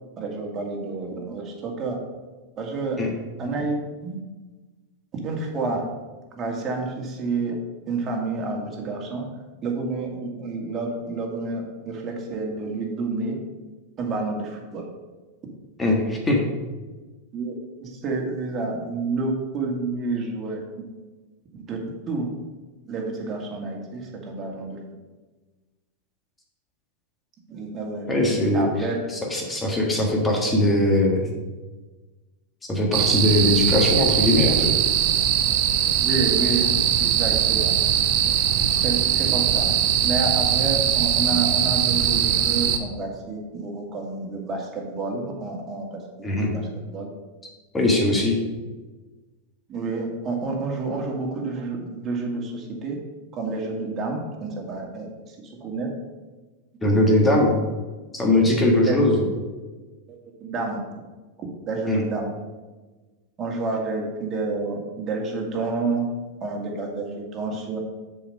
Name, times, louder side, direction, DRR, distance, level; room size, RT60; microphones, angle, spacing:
voice 1, 0.2-2.0 2.6-3.1 3.4-4.2 5.1-5.8 6.3-7.5 7.9-9.3 9.6-13.4 14.0-14.9 17.3-21.0 21.6-22.3 22.9-24.8 27.5-28.1 28.5-29.0 29.6-29.7 36.0-36.7 37.0-37.8 38.6-39.7 40.0-47.1 47.9-48.3 49.7-53.0 53.3-55.9 57.4-57.5 58.6-59.0 60.1-60.8 61.7-62.3 63.4-66.1 66.4-67.8, right 3 dB, 35° right, 0 dB, 1.9 m, -29 dB
voice 2, 15.8-16.4 28.1-28.6 29.1-31.3 32.7-34.7 46.2-46.5 47.7-48.4 56.8-57.6 58.1-59.3 61.9-62.0, left 1 dB, 15° left, 0 dB, 1.7 m, -20 dB
sound 1, 32.9-42.8, right 10 dB, 55° right, 0.8 m, -21 dB
7.0 x 4.9 x 5.4 m, 1.3 s
hypercardioid pair, 100°, 0 cm